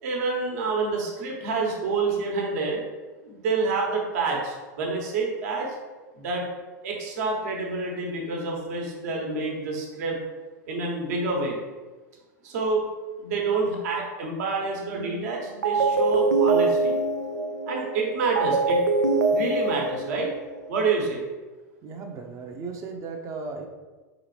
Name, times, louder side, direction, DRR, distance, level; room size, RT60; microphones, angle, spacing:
voice 1, 0.0-2.8 3.2-5.7 6.2-6.5 6.8-10.2 10.7-11.6 12.4-12.9 13.2-16.9 17.7-18.8 19.3-20.3 20.7-21.2, right 4 dB, 65° right, 0 dB, 1.3 m, -28 dB
sound 1, 14.9-15.3 15.6-20.7, right 3 dB, 90° right, 0.5 m, -24 dB
voice 2, 21.8-23.7, right 4 dB, 35° right, 3 dB, 0.8 m, -36 dB
4.2 x 3.8 x 3.3 m, 1.3 s
hypercardioid pair, 100°, 9 cm